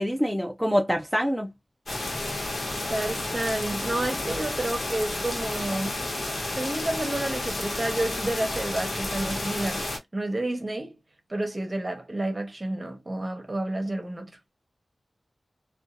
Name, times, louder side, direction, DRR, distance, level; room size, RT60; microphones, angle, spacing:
voice 1, 0.0-1.5, equal, ahead, 0.4 m, -25 dB
sound 1, 1.9-10.0, left 2 dB, 65° left, 1.1 m, -31 dB
voice 2, 2.5-6.0 6.5-9.8 10.1-11.0 11.3-14.3, right 1 dB, 30° right, 0.9 m, -30 dB
2.6 x 2.2 x 2.5 m
wide cardioid pair, 85°, 0 cm